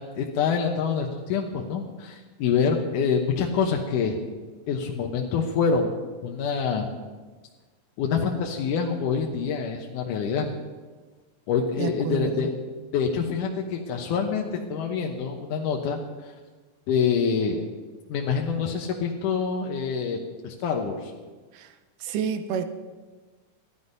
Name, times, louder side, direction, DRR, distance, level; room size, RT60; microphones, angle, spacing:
voice 1, 0.0-4.2 4.7-5.9 6.2-6.9 8.0-10.5 11.5-12.5 12.9-16.3 16.9-17.6 18.1-20.2 20.4-21.1, left 6 dB, 70° left, 0 dB, 2.3 m, -26 dB
voice 2, 11.8-12.6 21.5-22.6, right 7 dB, 75° right, 9 dB, 2.1 m, -30 dB
14.5 x 11.5 x 5.4 m, 1.4 s
omnidirectional pair, 4.3 m